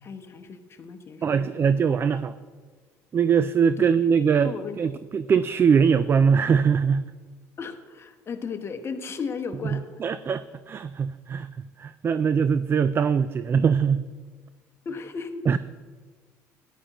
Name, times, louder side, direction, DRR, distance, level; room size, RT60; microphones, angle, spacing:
voice 1, 0.0-1.5 3.8-3.9 4.4-5.0 7.6-9.8 14.8-15.6, left 5 dB, 35° left, 6 dB, 1.0 m, -35 dB
voice 2, 1.2-2.3 3.1-7.0 9.7-11.5 11.8-14.1 15.5-15.6, right 6 dB, 35° right, 14 dB, 0.3 m, -22 dB
13.5 x 10.0 x 3.0 m, 1.5 s
supercardioid pair, 90°, 7 cm